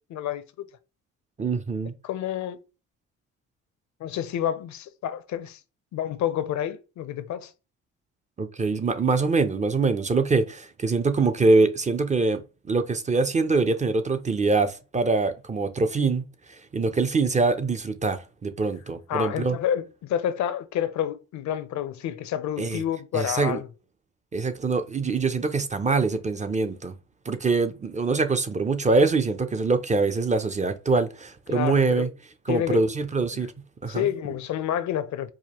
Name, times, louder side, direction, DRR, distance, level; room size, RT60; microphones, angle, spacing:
voice 1, 0.1-0.4 2.0-2.6 4.0-5.6 5.9-7.5 19.1-23.7 31.5-32.1 32.5-32.8 33.3-33.4 33.9-35.3, left 10 dB, 70° left, 0.6 m, -29 dB
voice 2, 1.4-1.9 8.4-19.6 22.6-22.8 23.1-23.6 24.3-26.9 27.3-32.1 32.5-33.5 33.8-34.1, right 3 dB, 25° right, 0.5 m, -24 dB
4.8 x 2.1 x 2.9 m
cardioid pair, 90°, 30 cm